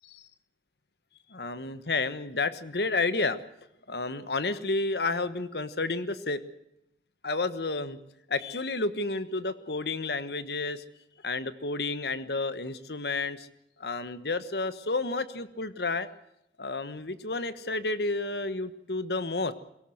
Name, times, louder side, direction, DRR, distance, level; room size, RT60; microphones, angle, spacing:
voice 1, 1.3-3.4 3.9-6.4 7.2-8.0 8.3-10.8 11.2-13.5 13.8-16.1 16.6-19.5, left 3 dB, 65° left, 13 dB, 1.3 m, -31 dB
22.5 x 18.0 x 7.8 m, 0.81 s
head